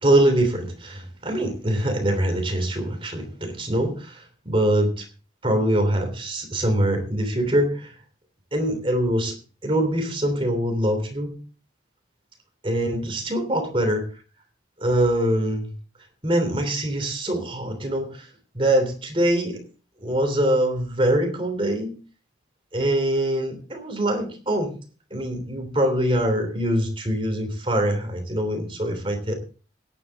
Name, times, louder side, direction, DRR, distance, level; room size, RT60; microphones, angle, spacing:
voice 1, 0.0-5.1 5.4-7.9 8.5-9.4 9.6-11.4 12.6-14.0 14.8-15.7 16.2-18.3 18.5-19.6 20.0-21.9 22.7-24.7 25.1-29.3, right 1 dB, 30° right, 6 dB, 3.1 m, -23 dB
16.5 x 11.0 x 3.6 m, 0.38 s
head